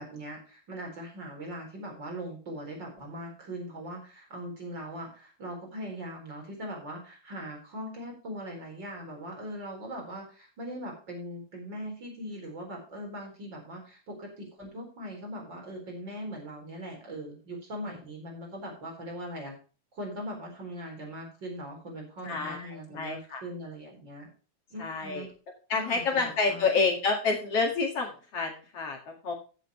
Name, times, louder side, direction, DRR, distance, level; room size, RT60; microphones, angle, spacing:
voice 1, 0.0-19.5 19.9-24.3 24.7-25.3 25.7-26.6, equal, 35° right, 1 dB, 4.8 m, -40 dB
voice 2, 22.2-23.4 24.8-25.3 25.7-29.3, left 4 dB, 55° left, 2 dB, 2.8 m, -29 dB
15.0 x 7.7 x 3.1 m, 0.35 s
omnidirectional pair, 3.5 m